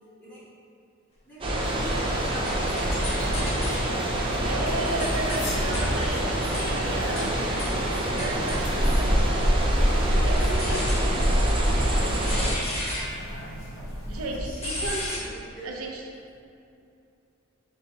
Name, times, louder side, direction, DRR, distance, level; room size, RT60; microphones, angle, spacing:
voice 1, 1.2-3.4 5.7-9.3 9.8-11.1 14.2-14.6 15.2-15.7, right 1 dB, 10° left, -12 dB, 1.5 m, -45 dB
sound 1, 1.4-12.5, right 1 dB, 25° right, 0.5 m, -25 dB
sound 2, 1.6-14.4, equal, 65° left, 1.0 m, -40 dB
sound 3, 2.5-3.9 4.5-9.6 10.4-15.2, left 1 dB, 30° left, 0.7 m, -36 dB
voice 2, 4.3-6.2 6.5-7.3 7.9-9.1 10.0-11.4 14.1-15.2 15.6-16.0, right 2 dB, 80° right, 0 dB, 0.6 m, -34 dB
4.0 x 2.7 x 4.6 m, 2.6 s
head